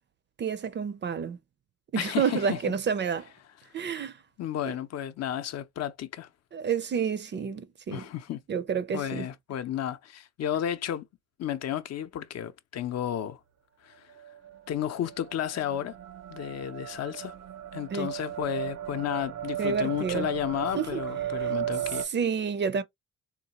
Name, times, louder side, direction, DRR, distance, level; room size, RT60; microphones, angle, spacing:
voice 1, 0.4-1.4 1.9-3.3 3.7-4.2 4.7-4.8 6.5-8.0 8.5-9.3 17.9-18.1 19.6-20.3 20.7-21.0 22.1-22.8, right 6 dB, 35° right, 0.5 m, -29 dB
voice 2, 2.0-2.6 4.4-6.3 7.9-8.4 8.9-11.1 11.4-13.4 13.8-14.1 14.7-15.9 16.3-17.4 17.7-22.1, left 10 dB, 60° left, 0.6 m, -32 dB
sound 1, 14.1-22.0, right 11 dB, 80° right, 0.7 m, -36 dB
3.9 x 2.3 x 2.8 m
cardioid pair, 90°, 30 cm